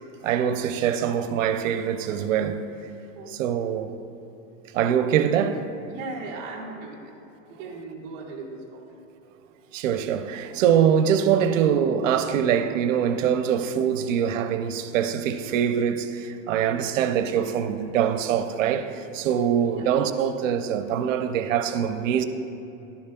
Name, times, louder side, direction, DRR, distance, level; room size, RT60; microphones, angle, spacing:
voice 1, 0.2-2.6 3.3-3.9 4.7-5.6 9.7-22.2, right 8 dB, 70° right, 0.5 m, -23 dB
voice 2, 3.1-3.8 5.9-7.1 7.5-8.8 19.7-19.9, right 3 dB, 10° right, 0.4 m, -38 dB
11.5 x 6.9 x 2.3 m
supercardioid pair, 175°, 40 cm